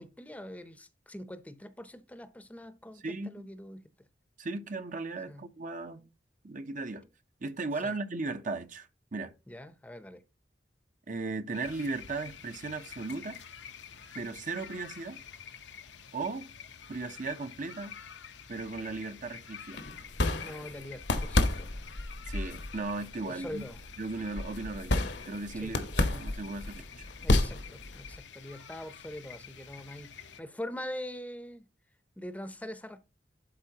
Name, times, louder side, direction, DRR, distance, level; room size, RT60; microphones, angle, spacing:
voice 1, 0.0-3.8 5.3-5.5 7.8-7.9 9.5-10.2 20.4-21.7 23.3-23.8 25.6-25.8 27.2-31.7 32.2-33.0, left 1 dB, 10° left, 0.7 m, -43 dB
voice 2, 3.0-3.5 4.4-6.1 6.4-7.1 7.4-9.3 11.1-13.4 14.1-15.2 16.1-16.5 16.9-18.0 18.5-19.8 22.3-23.6 24.0-24.9 25.2-27.1, right 3 dB, 45° right, 0.8 m, -36 dB
sound 1, 11.5-30.4, left 7 dB, 90° left, 1.0 m, -49 dB
sound 2, 19.7-28.2, left 2 dB, 70° left, 1.1 m, -31 dB
12.0 x 4.4 x 2.9 m
head